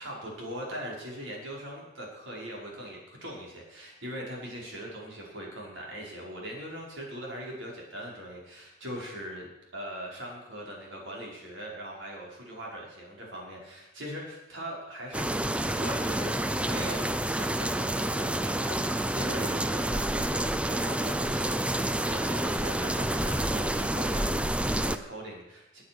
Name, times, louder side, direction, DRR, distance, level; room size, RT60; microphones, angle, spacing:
voice 1, 0.0-15.2 15.5-25.8, equal, 65° right, -2 dB, 5.6 m, -41 dB
sound 1, 15.1-25.0, right 1 dB, 5° right, 0.4 m, -28 dB
20.0 x 9.7 x 6.3 m, 0.92 s
head